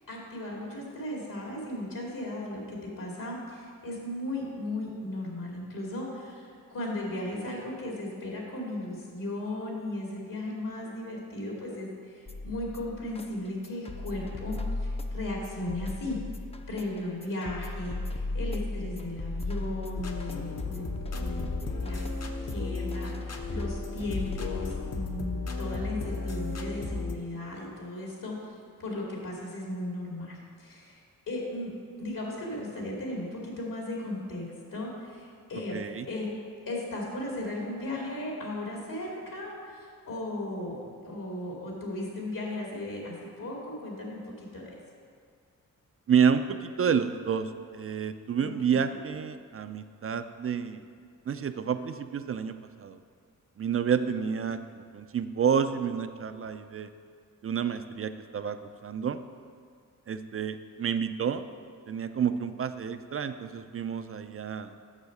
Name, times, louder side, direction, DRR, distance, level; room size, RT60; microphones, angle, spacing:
voice 1, 0.1-16.2 16.7-31.7 32.0-35.8 36.1-36.3 36.7-40.8 41.0-44.7 48.4-49.0 54.1-54.3, left 1 dB, 70° left, -2 dB, 2.5 m, -36 dB
sound 1, 12.3-25.2, left 2 dB, 20° left, 0.5 m, -37 dB
sound 2, 19.9-27.2, left 3 dB, 50° left, 0.8 m, -35 dB
voice 2, 35.7-36.0 46.1-50.8 51.3-53.0 53.6-54.6 54.9-56.9 57.4-59.2 60.1-61.4 61.9-64.7, right 7 dB, 40° right, 9 dB, 0.4 m, -29 dB
7.2 x 6.3 x 6.5 m, 2.1 s
cardioid pair, 85°, 34 cm